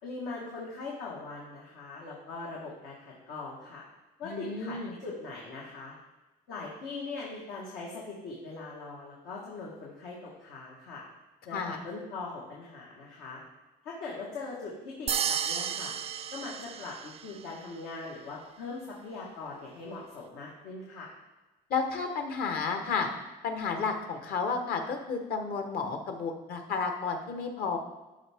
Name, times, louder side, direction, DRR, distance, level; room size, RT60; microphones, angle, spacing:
voice 1, 0.0-3.9 4.2-6.0 6.5-11.0 11.4-13.4 13.8-15.9 16.3-21.1, left 3 dB, 90° left, -4 dB, 1.6 m, -41 dB
voice 2, 4.2-5.0 11.5-11.8 21.7-23.1 23.4-27.8, left 5 dB, 65° left, 4 dB, 1.2 m, -32 dB
sound 1, 15.1-17.4, right 8 dB, 35° right, 0.4 m, -32 dB
12.0 x 5.1 x 3.6 m, 1.1 s
cardioid pair, 110°, 17 cm